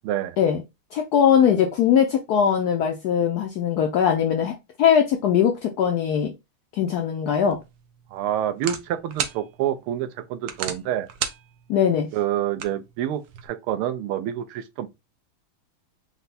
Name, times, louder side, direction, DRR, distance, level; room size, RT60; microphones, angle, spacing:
voice 1, 0.0-0.4 8.1-11.1 12.1-14.9, right 11 dB, 85° right, 1.5 m, -27 dB
voice 2, 0.9-4.5 4.8-6.3 6.7-7.6 11.7-12.1, left 8 dB, 85° left, 0.8 m, -20 dB
sound 1, 7.4-13.5, right 8 dB, 70° right, 1.2 m, -36 dB
4.5 x 2.1 x 4.0 m
omnidirectional pair, 2.3 m